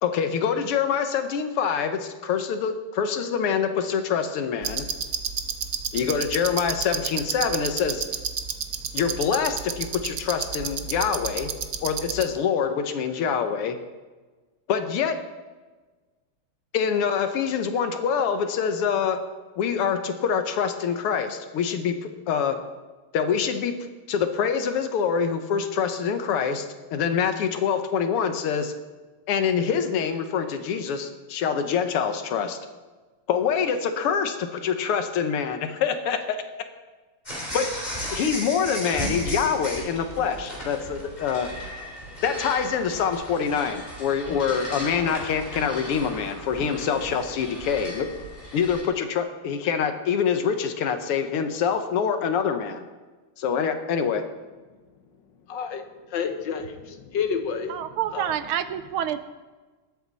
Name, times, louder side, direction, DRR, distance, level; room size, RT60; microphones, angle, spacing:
voice 1, 0.0-4.9 5.9-8.0 8.9-11.5 11.8-13.8 14.7-15.1 16.7-19.2 19.6-22.6 23.1-26.7 26.9-28.7 29.3-32.6 33.3-36.4 37.5-37.7 38.1-41.5 42.2-48.1 48.5-52.9 53.4-54.2, left 7 dB, 90° left, 8 dB, 2.0 m, -25 dB
sound 1, 4.6-12.2, right 7 dB, 60° right, 0.9 m, -31 dB
sound 2, 37.3-48.8, equal, 20° left, 3.6 m, -35 dB
voice 2, 55.5-55.8 56.1-57.7 58.1-58.3, left 6 dB, 60° left, 7 dB, 1.5 m, -29 dB
voice 3, 57.7-59.2, right 11 dB, 80° right, 12 dB, 1.5 m, -28 dB
20.0 x 8.6 x 4.1 m, 1.3 s
omnidirectional pair, 2.4 m